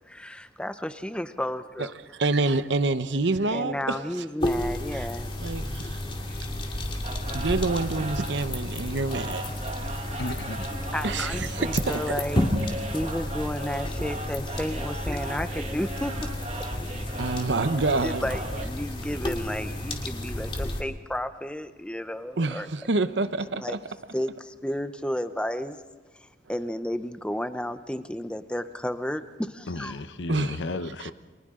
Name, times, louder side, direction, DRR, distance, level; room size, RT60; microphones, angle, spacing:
voice 1, 0.1-1.9 3.5-5.3 6.3-6.4 10.9-16.3 16.9-17.0 18.0-22.7 23.4-23.8 24.1-25.8 26.1-30.0, equal, 5° left, 0.7 m, -32 dB
voice 2, 2.2-4.0 4.9-5.1 5.4-6.0 7.3-10.1 11.0-12.2 17.2-18.3 18.5-18.6 22.4-23.8 30.3-30.6 31.0-31.1, right 3 dB, 70° right, 0.9 m, -27 dB
sound 1, 4.4-20.8, left 1 dB, 30° left, 2.4 m, -32 dB
sound 2, 7.0-18.7, right 2 dB, 35° right, 1.5 m, -38 dB
voice 3, 10.2-10.7 29.7-31.1, left 2 dB, 75° left, 0.9 m, -34 dB
29.5 x 24.5 x 3.8 m
head